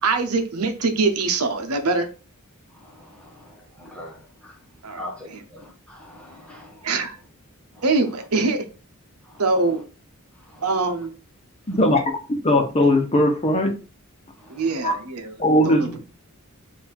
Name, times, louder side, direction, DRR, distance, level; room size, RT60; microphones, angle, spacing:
voice 1, 0.0-2.1 4.8-5.4 6.8-7.2 7.8-8.7 9.4-9.8 10.6-11.1 14.5-15.3 15.6-16.0, right 3 dB, 80° right, 0.9 m, -23 dB
voice 2, 2.7-4.6 5.0-6.9 7.7-7.8 9.3-9.4 10.4-10.6 14.4-14.6, left 1 dB, 5° left, 1.2 m, -42 dB
voice 3, 11.7-12.0 12.4-13.7 14.8-14.9 15.4-16.0, left 1 dB, 30° left, 1.0 m, -19 dB
4.1 x 2.7 x 4.3 m
head